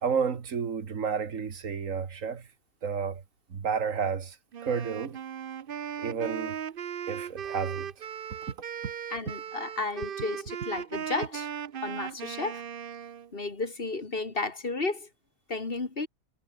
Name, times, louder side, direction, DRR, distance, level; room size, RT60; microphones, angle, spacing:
voice 1, 0.0-2.4 2.8-3.2 3.5-4.4 4.6-5.2 6.0-6.6 7.1-7.9, right 6 dB, 65° right, 1.9 m, -31 dB
Wind instrument woodwind instrument, 4.5-13.3, right 8 dB, 50° right, 0.8 m, -37 dB
voice 2, 9.1-11.5 11.8-12.6 13.3-15.1 15.5-16.1, left 3 dB, 40° left, 2.3 m, -33 dB
omnidirectional pair, 1.5 m